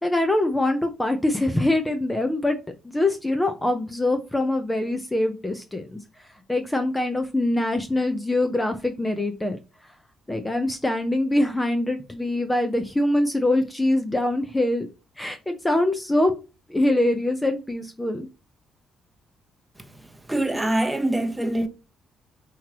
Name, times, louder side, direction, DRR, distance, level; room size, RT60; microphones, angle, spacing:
voice 1, 0.0-2.6 2.9-9.6 10.3-14.9 15.2-16.3 16.7-18.3, left 1 dB, 15° left, 0.7 m, -24 dB
voice 2, 20.3-21.7, right 1 dB, 10° right, 0.9 m, -24 dB
5.6 x 3.0 x 3.0 m
cardioid pair, 90°, 0 cm